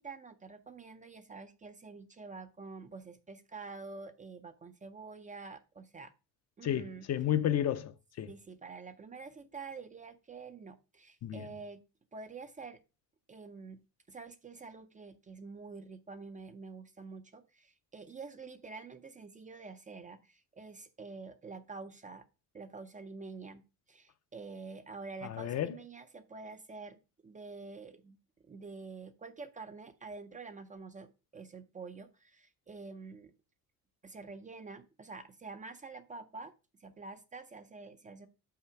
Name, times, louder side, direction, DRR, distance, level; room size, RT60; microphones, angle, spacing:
voice 1, 0.0-6.1 6.6-7.1 8.3-11.8 12.1-12.8 13.3-13.8 14.1-22.3 22.5-23.6 23.9-33.3 34.0-36.5 36.8-38.3, right 4 dB, 20° right, 0.4 m, -47 dB
voice 2, 6.6-8.3 11.2-11.5 25.2-25.7, left 11 dB, 45° left, 0.6 m, -32 dB
5.7 x 4.3 x 5.8 m
cardioid pair, 135°, 37 cm